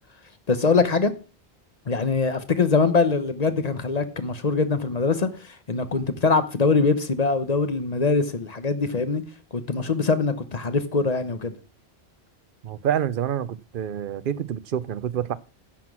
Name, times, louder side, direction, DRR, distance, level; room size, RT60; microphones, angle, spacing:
voice 1, 0.5-1.1 1.9-9.2 9.5-11.5, left 4 dB, 40° left, 1.0 m, -23 dB
voice 2, 12.6-15.4, right 9 dB, 60° right, 0.8 m, -27 dB
10.0 x 6.0 x 6.0 m
omnidirectional pair, 1.1 m